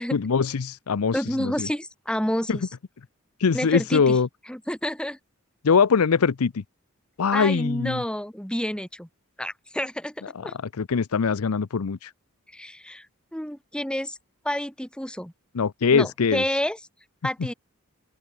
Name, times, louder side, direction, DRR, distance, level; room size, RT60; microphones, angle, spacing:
voice 1, 0.1-1.7 2.5-2.6 3.4-4.3 5.6-6.6 7.2-8.0 10.8-12.1 15.5-16.4, left 5 dB, 80° left, 0.6 m, -22 dB
voice 2, 1.1-2.7 3.5-4.2 4.5-5.2 7.3-9.1 9.4-10.5 12.5-13.1 13.3-14.2 14.4-15.3 15.9-16.8 17.2-17.5, equal, 5° left, 1.7 m, -29 dB
open air
head